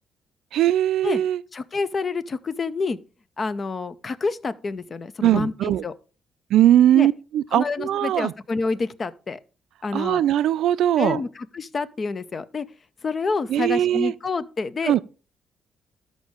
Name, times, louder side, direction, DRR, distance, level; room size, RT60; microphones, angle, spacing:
voice 1, 0.5-1.4 5.2-5.8 6.5-8.3 9.9-11.2 13.5-14.1 14.9-15.0, right 12 dB, 80° right, 0.3 m, -20 dB
voice 2, 1.5-3.0 3.4-5.9 6.9-7.1 7.5-9.4 9.8-10.2 11.0-12.7 13.0-15.0, left 4 dB, 40° left, 0.5 m, -28 dB
12.5 x 5.2 x 3.6 m
cardioid pair, 90°, 0 cm